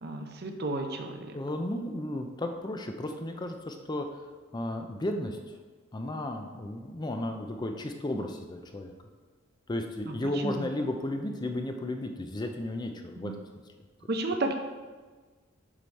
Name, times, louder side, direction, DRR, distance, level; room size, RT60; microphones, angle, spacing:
voice 1, 0.0-1.4 10.1-10.2 10.4-10.7 13.2-13.3 14.1-14.5, right 2 dB, 50° right, 5 dB, 0.7 m, -32 dB
voice 2, 1.3-4.2 4.5-5.6 5.9-8.9 9.7-13.3, left 1 dB, 20° left, 4 dB, 0.4 m, -34 dB
7.6 x 4.9 x 4.1 m, 1.4 s
head